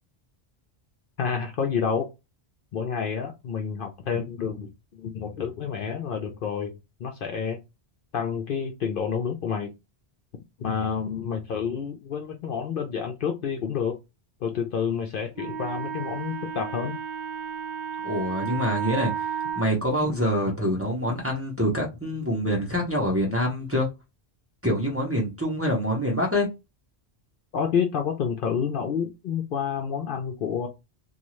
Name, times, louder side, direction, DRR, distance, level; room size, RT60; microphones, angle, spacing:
voice 1, 1.2-2.1 2.7-7.6 8.1-9.7 10.6-14.0 14.4-17.0 27.5-30.7, left 7 dB, 60° left, 0.7 m, -29 dB
Wind instrument woodwind instrument, 15.4-19.7, right 8 dB, 85° right, 0.9 m, -33 dB
voice 2, 18.0-23.9 24.6-26.5, equal, 15° right, 0.8 m, -26 dB
2.6 x 2.4 x 3.0 m
omnidirectional pair, 1.1 m